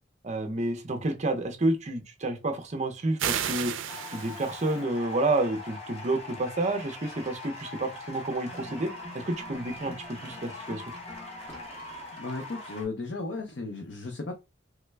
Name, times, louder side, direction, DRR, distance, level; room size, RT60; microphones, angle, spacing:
voice 1, 0.2-3.7 4.1-10.8, right 2 dB, 35° right, 0.6 m, -29 dB
sound 1, 3.2-4.8, right 9 dB, 90° right, 0.4 m, -32 dB
Applause enthusiastic with cheering and some foot stamping, 3.9-12.9, left 2 dB, 35° left, 1.0 m, -42 dB
sound 2, 8.5-12.5, left 1 dB, 5° left, 0.8 m, -48 dB
voice 2, 12.2-14.3, left 3 dB, 65° left, 0.5 m, -35 dB
3.2 x 2.1 x 3.2 m
head